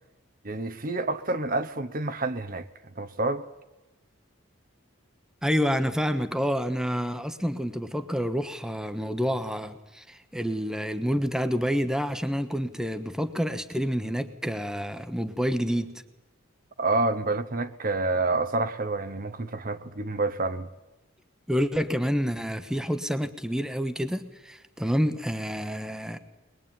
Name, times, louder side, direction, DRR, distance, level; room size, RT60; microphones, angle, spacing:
voice 1, 0.4-2.7 3.0-3.4 16.8-20.7, right 2 dB, 40° right, 0.9 m, -28 dB
voice 2, 5.4-15.9 21.5-26.2, equal, 5° right, 1.1 m, -28 dB
22.5 x 21.0 x 9.0 m
head